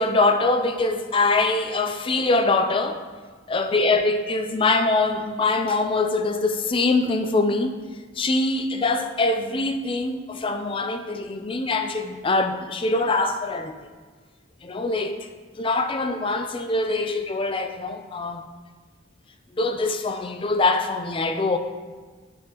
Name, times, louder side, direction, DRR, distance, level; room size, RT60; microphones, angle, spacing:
voice 1, 0.0-3.0 3.5-7.7 8.2-13.7 14.6-15.3 15.6-18.5 19.5-21.6, left 3 dB, 30° left, 0.5 m, -23 dB
9.5 x 6.2 x 2.9 m
head